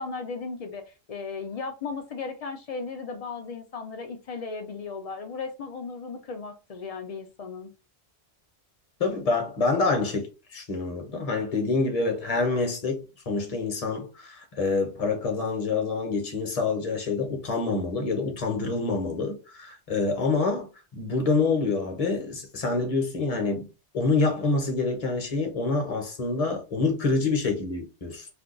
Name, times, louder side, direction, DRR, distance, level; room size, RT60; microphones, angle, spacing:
voice 1, 0.0-7.7, left 4 dB, 60° left, 0.4 m, -36 dB
voice 2, 9.0-23.7 23.9-28.3, left 3 dB, 40° left, 0.8 m, -27 dB
2.5 x 2.2 x 3.7 m
omnidirectional pair, 1.1 m